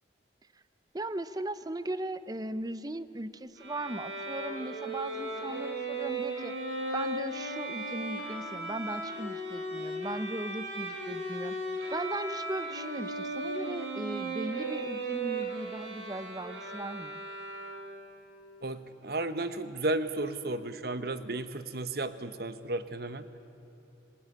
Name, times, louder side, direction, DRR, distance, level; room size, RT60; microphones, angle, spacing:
voice 1, 0.9-6.6 6.9-11.6 11.9-17.2, right 1 dB, 20° right, 14 dB, 0.6 m, -38 dB
Bowed string instrument, 3.6-18.1, right 2 dB, 80° right, 5.5 m, -36 dB
voice 2, 18.6-23.3, right 2 dB, 55° right, 11 dB, 1.1 m, -33 dB
26.5 x 18.5 x 9.8 m, 2.8 s
head